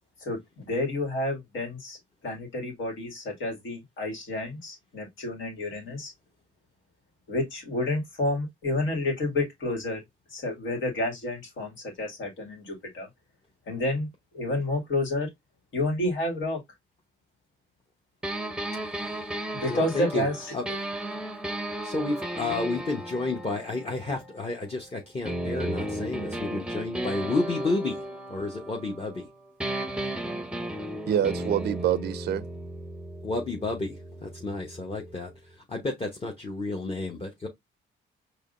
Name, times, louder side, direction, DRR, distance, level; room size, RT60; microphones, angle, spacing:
voice 1, 0.2-2.0 2.2-6.1 7.3-10.0 10.3-13.1 13.7-14.1 14.3-15.3 15.7-16.6 19.5-20.6, left 1 dB, 75° left, 2.2 m, -30 dB
sound 1, 18.2-24.8 25.2-29.3 29.6-35.3, right 1 dB, 5° right, 0.7 m, -35 dB
voice 2, 18.8-19.3 19.7-20.3 20.5-20.6 21.8-28.0 28.3-29.3 33.2-37.5, left 3 dB, 30° left, 1.1 m, -31 dB
voice 3, 31.1-32.4, right 10 dB, 55° right, 0.4 m, -26 dB
4.9 x 3.0 x 2.6 m
cardioid pair, 90°, 20 cm